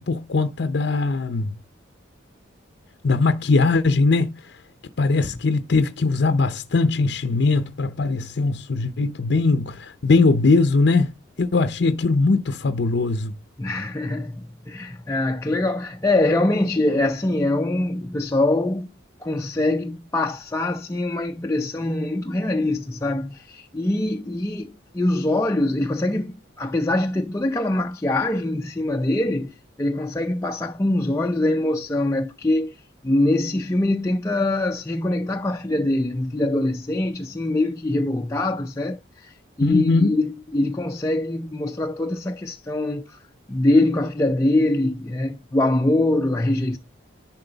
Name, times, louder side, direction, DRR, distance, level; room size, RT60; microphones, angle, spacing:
voice 1, 0.0-1.5 3.0-4.3 5.0-11.1 11.4-13.3 39.6-40.2, left 3 dB, 60° left, 0.6 m, -20 dB
voice 2, 13.6-18.9 19.2-32.8 33.0-43.2 43.5-46.8, left 2 dB, 15° left, 0.4 m, -23 dB
11.0 x 4.1 x 3.9 m
head